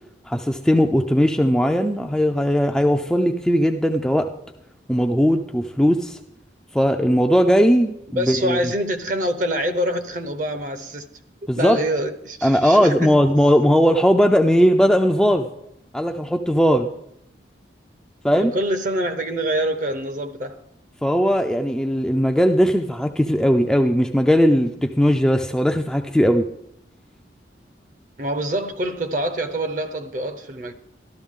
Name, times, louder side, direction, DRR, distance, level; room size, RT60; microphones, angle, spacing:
voice 1, 0.3-4.3 4.9-6.2 6.7-8.6 11.5-11.8 12.4-15.5 15.9-16.9 18.2-18.5 21.0-26.4, equal, 5° left, 0.4 m, -18 dB
voice 2, 8.2-11.1 11.5-13.1 18.3-20.6 28.2-30.7, right 1 dB, 45° right, 0.7 m, -25 dB
13.0 x 12.5 x 3.6 m
head